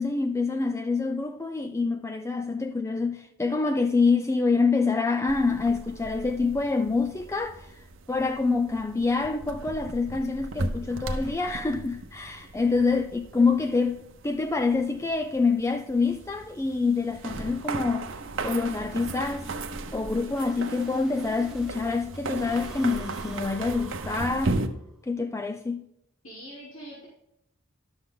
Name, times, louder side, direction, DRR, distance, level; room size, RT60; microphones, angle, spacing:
voice 1, 0.0-7.7 8.1-18.1 18.4-19.5 19.9-24.6 25.0-25.8, left 4 dB, 15° left, 0.3 m, -26 dB
sound 1, 5.3-24.7, right 2 dB, 70° right, 0.9 m, -37 dB
sound 2, 16.5-21.7 22.1-24.9, equal, 5° right, 1.3 m, -46 dB
voice 2, 26.2-27.1, equal, 75° left, 3.3 m, -43 dB
11.0 x 7.0 x 3.8 m
head